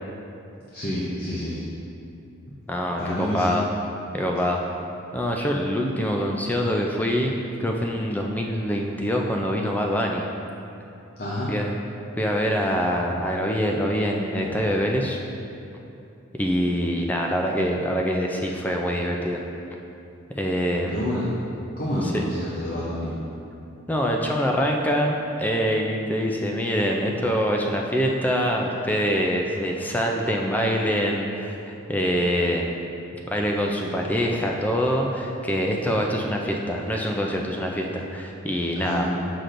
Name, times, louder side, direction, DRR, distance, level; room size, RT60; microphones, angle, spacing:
voice 1, 0.7-1.6 3.0-3.6 11.2-11.5 20.9-21.3 21.8-23.1 38.8-39.0, left 1 dB, 45° left, -6 dB, 0.7 m, -28 dB
voice 2, 2.7-3.7 4.1-4.6 5.1-7.3 7.6-10.3 11.5-11.8 12.2-15.2 16.3-19.4 20.3-21.1 22.0-22.2 23.9-32.8 33.3-39.0, equal, 10° left, 0 dB, 0.3 m, -25 dB
6.6 x 5.8 x 2.5 m, 2.7 s
head